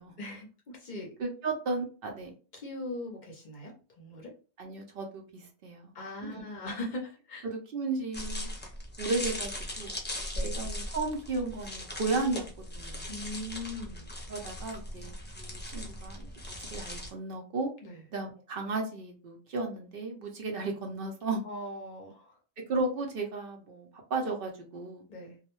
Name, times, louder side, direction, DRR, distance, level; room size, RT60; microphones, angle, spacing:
voice 1, 0.2-1.1 2.5-4.3 5.9-7.5 10.3-10.6 13.1-14.1 17.8-18.0 21.2-22.4 25.1-25.4, left 1 dB, 55° left, 0 dB, 0.6 m, -40 dB
voice 2, 1.2-2.3 4.6-5.9 6.2-6.5 7.4-8.5 9.0-9.5 9.8-9.9 10.4-13.1 14.3-17.7 18.1-21.4 22.7-25.0, right 3 dB, 65° right, 2 dB, 0.8 m, -34 dB
sound 1, 8.1-17.1, left 1 dB, 15° left, 0.4 m, -39 dB
2.3 x 2.1 x 2.9 m, 0.36 s
omnidirectional pair, 1.1 m